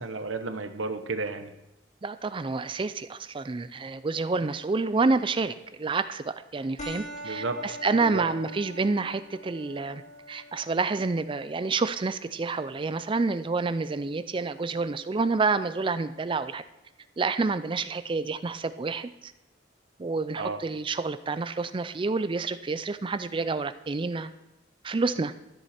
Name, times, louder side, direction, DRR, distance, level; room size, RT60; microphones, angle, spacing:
voice 1, 0.0-1.5 7.2-7.6 7.9-8.2 20.4-20.6, right 3 dB, 90° right, 9 dB, 0.9 m, -32 dB
voice 2, 2.0-10.0 10.3-16.6 17.2-19.3 20.0-24.3 24.8-25.3, right 3 dB, 25° right, 13 dB, 0.4 m, -28 dB
sound 1, 6.8-15.8, equal, 35° left, 1.3 m, -45 dB
13.5 x 8.0 x 4.3 m, 0.95 s
head